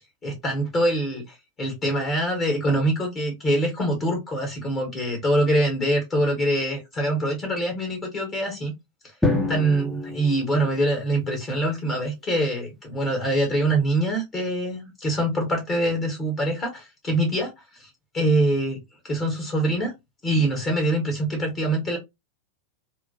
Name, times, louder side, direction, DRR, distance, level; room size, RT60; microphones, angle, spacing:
voice 1, 0.0-8.7 9.5-17.9 18.1-18.8 19.0-19.9 20.2-22.0, right 1 dB, 25° left, 1.2 m, -24 dB
Drum, 9.2-11.4, left 2 dB, 5° left, 0.6 m, -27 dB
3.0 x 2.1 x 2.7 m
figure-of-eight pair, 90°, 0 cm